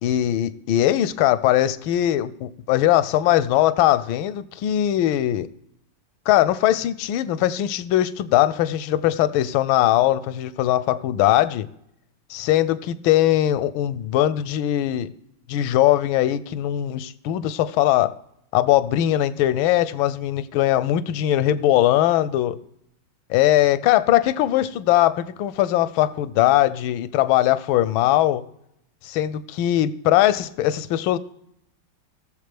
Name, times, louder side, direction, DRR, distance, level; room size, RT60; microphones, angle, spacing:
voice 1, 0.0-5.5 6.3-11.7 12.3-15.1 15.5-18.2 18.5-22.6 23.3-28.4 29.0-31.2, left 13 dB, 85° left, 1.4 m, -20 dB
19.0 x 7.1 x 3.4 m
omnidirectional pair, 2.2 m